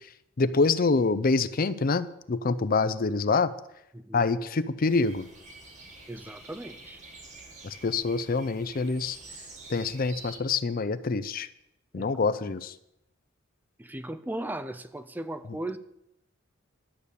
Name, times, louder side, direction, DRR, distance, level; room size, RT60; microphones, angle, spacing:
voice 1, 0.4-3.5 4.1-5.2 7.6-9.2 9.7-11.5 11.9-12.7, left 4 dB, 45° left, 14 dB, 0.5 m, -26 dB
voice 2, 3.9-4.3 6.1-7.0 12.0-12.1 13.8-15.8, right 1 dB, 10° right, 12 dB, 0.4 m, -37 dB
sound 1, 4.9-10.4, right 2 dB, 35° right, 2.1 m, -48 dB
12.0 x 6.8 x 8.4 m, 0.83 s
head